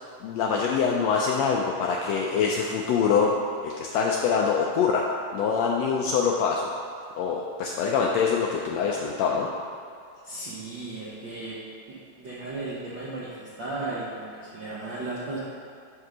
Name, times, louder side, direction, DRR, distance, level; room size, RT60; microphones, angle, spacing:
voice 1, 0.2-3.3 3.6-5.1 5.3-6.7 7.2-9.5, left 6 dB, 80° left, -1 dB, 1.5 m, -24 dB
voice 2, 10.2-11.6 12.2-15.4, right 2 dB, 65° right, -8 dB, 1.1 m, -35 dB
9.3 x 3.6 x 6.1 m, 2.4 s
omnidirectional pair, 3.5 m